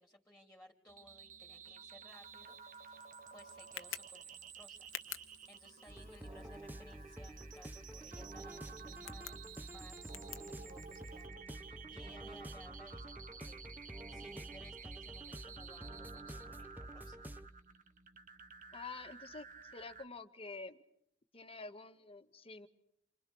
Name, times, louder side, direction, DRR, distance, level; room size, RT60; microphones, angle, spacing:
voice 1, 0.0-4.9 5.5-17.3, left 1 dB, 10° left, 0 dB, 3.5 m, -60 dB
sound 1, 0.9-20.0, right 6 dB, 40° right, 1.3 m, -53 dB
Tick, 2.1-11.3, left 11 dB, 70° left, 1.2 m, -53 dB
sound 2, 5.9-17.5, right 1 dB, 10° right, 1.1 m, -49 dB
voice 2, 18.7-19.5 19.7-20.8 21.3-22.7, left 3 dB, 30° left, 7 dB, 1.9 m, -48 dB
29.0 x 26.0 x 6.4 m, 0.71 s
head